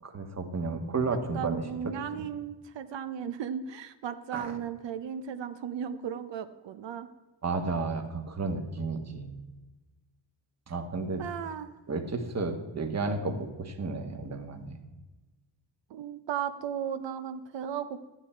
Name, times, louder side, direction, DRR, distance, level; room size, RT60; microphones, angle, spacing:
voice 1, 0.0-1.6 4.3-4.5 7.4-9.4 10.7-11.2 11.9-14.8, right 3 dB, 35° right, 6 dB, 1.3 m, -32 dB
voice 2, 1.3-7.1 11.2-11.7 15.9-18.0, right 8 dB, 75° right, 10 dB, 0.7 m, -36 dB
12.0 x 9.7 x 4.4 m, 1.2 s
wide cardioid pair, 135°, 44 cm